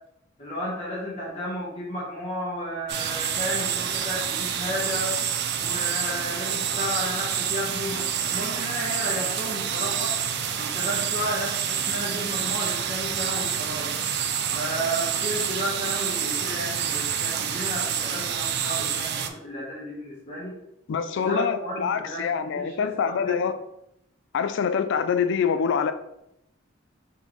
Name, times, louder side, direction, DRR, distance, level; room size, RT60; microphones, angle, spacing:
voice 1, 0.4-5.1 5.6-10.2 10.6-13.9 14.5-20.6 21.1-23.4, equal, 35° left, -7 dB, 1.0 m, -33 dB
sound 1, 2.9-19.3, right 8 dB, 55° right, 0.4 m, -28 dB
voice 2, 20.9-23.6 24.3-25.9, left 6 dB, 60° left, 10 dB, 0.3 m, -25 dB
3.7 x 3.7 x 3.0 m, 0.82 s
head